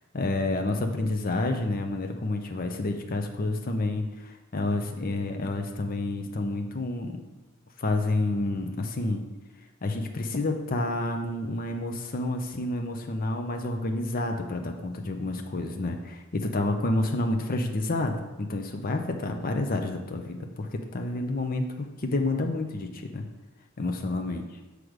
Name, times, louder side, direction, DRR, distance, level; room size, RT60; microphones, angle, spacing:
voice 1, 0.1-7.2 7.8-9.2 9.8-23.2 23.8-24.4, left 2 dB, 45° left, 5 dB, 0.6 m, -29 dB
6.3 x 4.9 x 5.0 m, 1.1 s
head